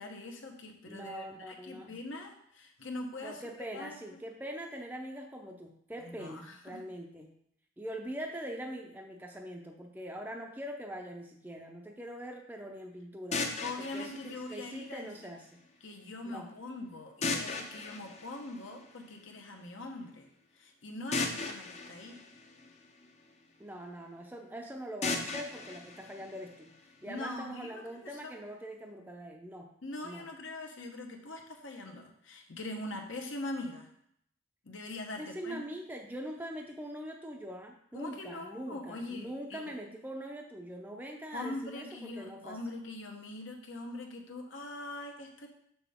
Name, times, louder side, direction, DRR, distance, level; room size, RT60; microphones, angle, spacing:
voice 1, 0.0-3.4 3.7-4.0 6.0-6.8 13.6-15.1 15.8-22.2 27.1-28.3 29.8-33.9 34.6-35.6 37.9-39.7 41.3-45.5, left 2 dB, 70° left, 3 dB, 1.1 m, -42 dB
voice 2, 0.9-2.0 3.2-7.3 7.8-13.5 13.8-14.1 14.5-15.5 16.2-16.5 23.6-29.7 30.0-30.2 35.2-42.6, equal, 10° right, 1 dB, 0.5 m, -43 dB
sound 1, 13.3-15.3 17.2-19.2 21.1-23.3 25.0-27.0, left 3 dB, 35° left, 0.7 m, -37 dB
6.7 x 5.9 x 3.5 m, 0.70 s
head